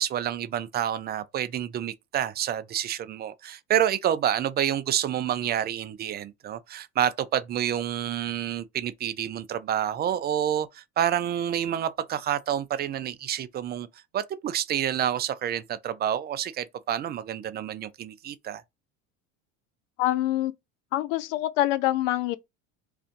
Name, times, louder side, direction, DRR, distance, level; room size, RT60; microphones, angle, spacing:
voice 1, 0.0-13.9 14.1-18.6, right 10 dB, 30° right, 0.3 m, -28 dB
voice 2, 20.0-20.5 20.9-22.4, left 15 dB, 80° left, 0.5 m, -25 dB
2.6 x 2.4 x 3.7 m
supercardioid pair, 90°, 37 cm